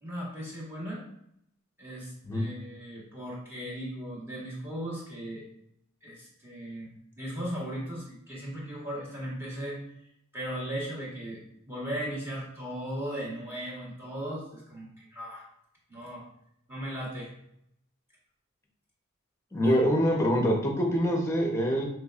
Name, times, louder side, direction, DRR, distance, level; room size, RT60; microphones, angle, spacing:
voice 1, 0.0-1.0 1.8-5.4 6.0-6.9 7.2-9.8 10.3-11.4 11.7-15.5 15.9-16.2 16.7-17.3 19.6-19.9, equal, 10° right, -5 dB, 1.4 m, -37 dB
voice 2, 19.5-21.8, equal, 15° left, 1 dB, 0.8 m, -25 dB
5.9 x 3.2 x 2.4 m, 0.74 s
head